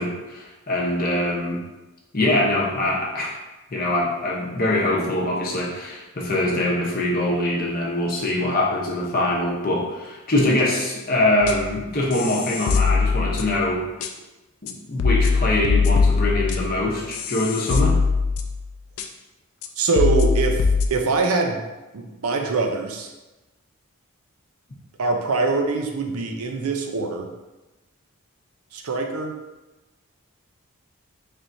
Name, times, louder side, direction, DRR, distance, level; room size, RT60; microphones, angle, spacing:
voice 1, 0.0-1.6 2.1-3.3 3.7-13.8 14.6-18.0, left 1 dB, 40° left, -2 dB, 0.7 m, -23 dB
sound 1, 11.4-11.8 12.1-13.6 14.0-14.1 14.7-14.8 15.0-18.7 19.0-19.1 19.6-19.7 20.0-20.9, left 4 dB, 85° left, 0.4 m, -21 dB
voice 2, 19.8-20.6 20.9-21.6 21.9-23.1 25.0-27.3 28.7-29.3, right 3 dB, 80° right, 3 dB, 0.6 m, -23 dB
4.3 x 3.3 x 2.6 m, 1.1 s
head